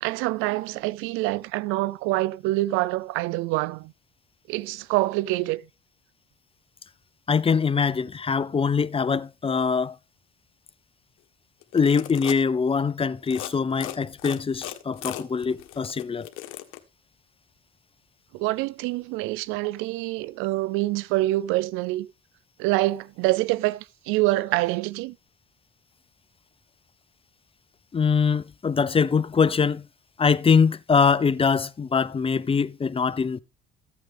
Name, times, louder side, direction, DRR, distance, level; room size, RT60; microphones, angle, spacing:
voice 1, 0.0-3.9 4.5-5.6 18.3-22.1 22.6-25.1, right 19 dB, 85° right, 0.6 m, -26 dB
voice 2, 7.3-10.0 11.7-16.3 27.9-29.8 30.2-33.4, left 5 dB, 25° left, 0.7 m, -23 dB
sound 1, 11.6-12.4 13.2-13.5 13.8-16.8, left 14 dB, 85° left, 1.4 m, -37 dB
14.5 x 8.5 x 3.5 m
supercardioid pair, 75°, 20 cm